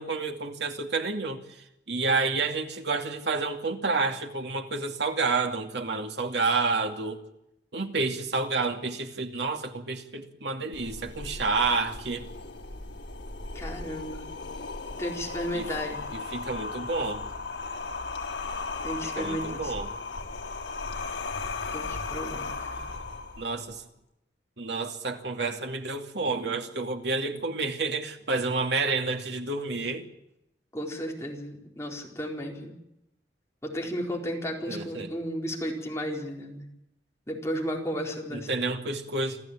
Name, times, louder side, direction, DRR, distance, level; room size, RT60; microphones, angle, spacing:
voice 1, 0.0-7.2 7.7-12.3 15.5-15.7 16.1-17.3 19.0-19.9 23.4-23.8 24.6-30.1 34.7-35.1 38.3-39.4, right 3 dB, 65° right, 4 dB, 2.6 m, -29 dB
sound 1, 10.7-23.7, left 3 dB, 75° left, 3.6 m, -36 dB
voice 2, 13.5-14.3 15.0-16.0 18.8-19.7 21.7-22.9 30.7-32.7 33.6-36.7 37.3-38.5, equal, 15° left, 0 dB, 4.4 m, -34 dB
27.0 x 14.0 x 8.8 m, 0.85 s
head